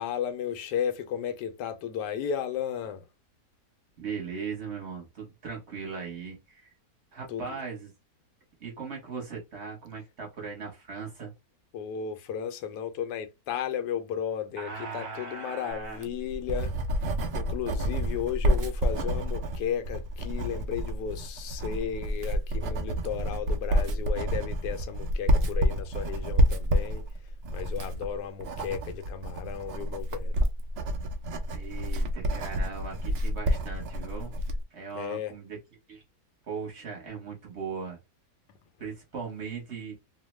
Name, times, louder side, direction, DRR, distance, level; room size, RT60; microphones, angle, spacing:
voice 1, 0.0-3.0 7.3-7.6 11.7-16.7 17.3-27.1 27.5-30.3 34.9-35.4 38.8-38.9, left 8 dB, 85° left, 1.2 m, -34 dB
voice 2, 4.0-6.7 7.1-7.9 8.6-11.3 14.6-16.1 31.5-34.3 34.7-35.6 35.9-36.0 36.5-38.0 38.8-39.9, right 5 dB, 45° right, 1.1 m, -38 dB
Writing, 15.9-34.6, equal, 85° right, 0.5 m, -29 dB
2.9 x 2.0 x 3.1 m
omnidirectional pair, 1.7 m